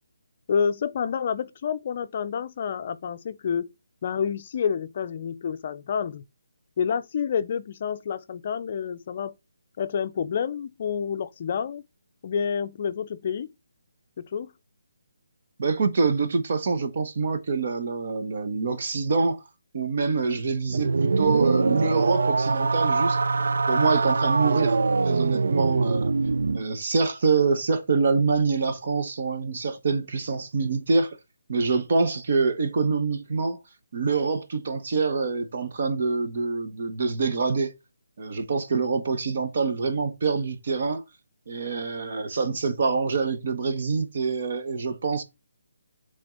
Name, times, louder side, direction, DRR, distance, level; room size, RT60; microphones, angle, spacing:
voice 1, 0.5-3.7 4.0-6.2 6.8-9.3 9.8-11.8 12.2-13.5 14.2-14.5, left 7 dB, 40° left, 0.5 m, -28 dB
voice 2, 15.6-19.4 19.7-23.2 23.7-24.8 25.0-26.1 26.5-31.2 31.5-33.6 33.9-37.7 38.2-41.0 41.5-45.2, right 4 dB, 50° right, 1.2 m, -25 dB
sound 1, 20.7-26.6, right 4 dB, 70° right, 0.4 m, -23 dB
8.6 x 3.7 x 3.8 m
hypercardioid pair, 160°, 0 cm